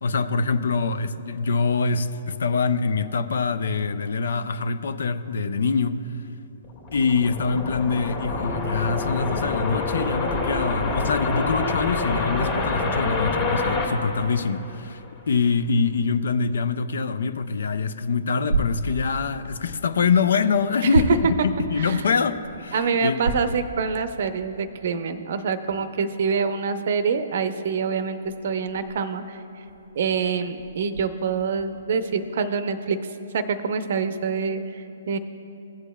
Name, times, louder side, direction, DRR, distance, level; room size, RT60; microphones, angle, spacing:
voice 1, 0.0-6.0 6.9-23.2, left 5 dB, 60° left, 12 dB, 0.4 m, -24 dB
sound 1, 6.6-15.0, left 3 dB, 35° left, 1.8 m, -27 dB
sound 2, 8.3-11.9, left 3 dB, 5° left, 0.7 m, -37 dB
sound 3, 18.4-19.5 20.1-21.6 22.1-23.7 24.1-24.2 24.8-24.9 25.6-31.8, right 1 dB, 90° left, 0.7 m, -31 dB
voice 2, 22.7-28.2 28.4-29.4 30.0-33.0 33.3-35.2, right 5 dB, 55° right, 12 dB, 0.6 m, -25 dB
16.0 x 7.9 x 2.3 m, 2.8 s
figure-of-eight pair, 125°, 0 cm